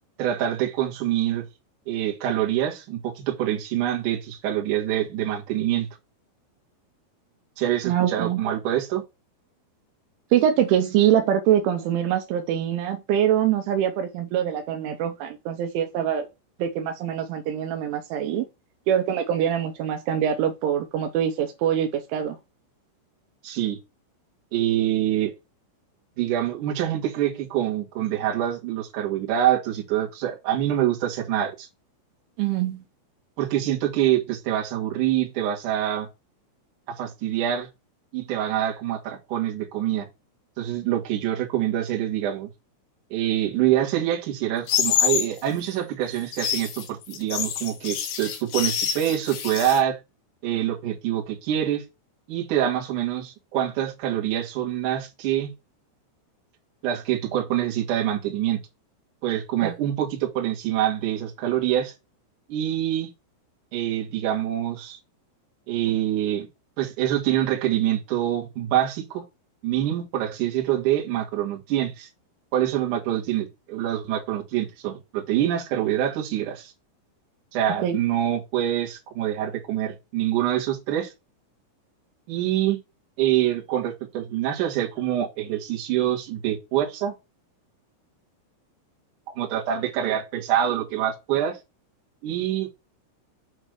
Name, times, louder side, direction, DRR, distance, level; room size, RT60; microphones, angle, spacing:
voice 1, 0.2-1.5 1.9-5.9 7.6-9.0 23.4-23.8 24.5-25.3 26.2-31.7 33.4-36.1 36.9-37.7 38.1-40.1 40.6-42.5 43.1-50.0 50.4-51.8 52.3-55.5 56.8-58.6 59.2-61.9 62.5-63.1 63.7-65.0 65.7-66.5 66.8-69.2 69.6-72.1 72.5-76.7 77.5-81.1 82.3-82.8 83.2-87.1 89.3-91.6 92.2-92.7, right 11 dB, 60° right, 2.3 m, -25 dB
voice 2, 7.8-8.4 10.3-16.3 16.6-18.5 18.9-22.4 32.4-32.8 59.6-59.7 77.8-78.0, right 10 dB, 85° right, 2.9 m, -24 dB
sound 1, 44.7-45.3 46.2-49.8, left 9 dB, 85° left, 2.0 m, -26 dB
8.0 x 3.2 x 6.4 m
omnidirectional pair, 5.9 m